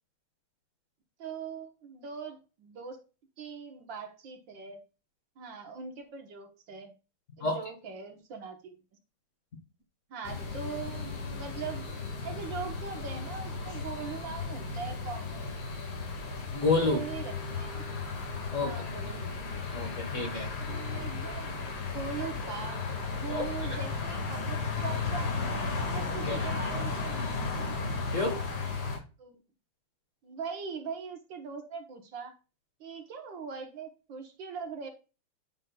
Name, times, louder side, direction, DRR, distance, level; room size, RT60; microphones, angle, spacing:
voice 1, 1.2-3.0 3.4-4.8 5.4-6.9 7.4-8.8 10.1-11.9 12.2-15.5 16.8-17.7 18.6-19.4 20.6-22.8 23.1-25.5 25.8-27.7 29.2-29.4 30.2-32.4 32.8-34.9, right 6 dB, 60° right, 1.8 m, -41 dB
sound 1, 10.2-29.0, left 4 dB, 90° left, 2.9 m, -35 dB
voice 2, 16.5-17.0 18.5-18.9 19.7-20.5 23.3-23.8 26.3-26.5 28.1-28.4, left 3 dB, 40° left, 1.5 m, -29 dB
9.1 x 6.3 x 2.3 m
omnidirectional pair, 2.4 m